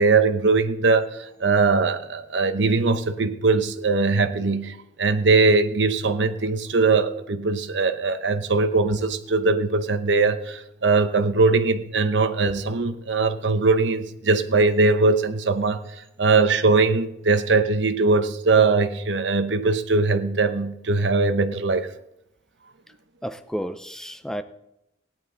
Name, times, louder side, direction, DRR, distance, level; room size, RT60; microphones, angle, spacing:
voice 1, 0.0-15.8 16.2-21.9, right 3 dB, 80° right, 0.9 m, -21 dB
voice 2, 23.2-24.4, equal, 5° left, 0.4 m, -31 dB
17.0 x 10.5 x 3.9 m
head